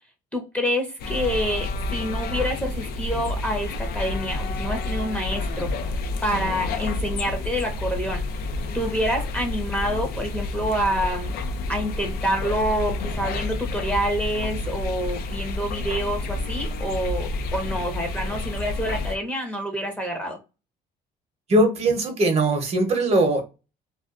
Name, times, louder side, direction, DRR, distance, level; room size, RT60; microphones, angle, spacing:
voice 1, 0.3-5.7 6.2-8.2 8.7-11.3 11.7-20.4, equal, 10° left, 3 dB, 0.7 m, -27 dB
sound 1, 1.0-19.2, left 2 dB, 65° left, 0.4 m, -29 dB
voice 2, 21.5-23.4, right 1 dB, 40° right, 5 dB, 0.7 m, -20 dB
2.3 x 2.3 x 2.3 m, 0.29 s
cardioid pair, 110°, 17 cm